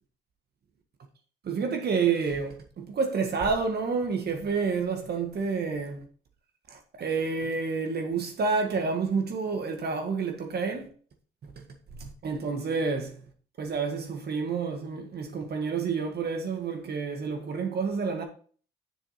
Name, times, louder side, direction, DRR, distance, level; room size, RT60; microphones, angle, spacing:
voice 1, 1.4-6.0 6.7-10.9 12.2-13.1 13.6-18.2, right 5 dB, 55° right, 1.7 m, -29 dB
7.2 x 6.5 x 4.2 m
cardioid pair, 90°, 20 cm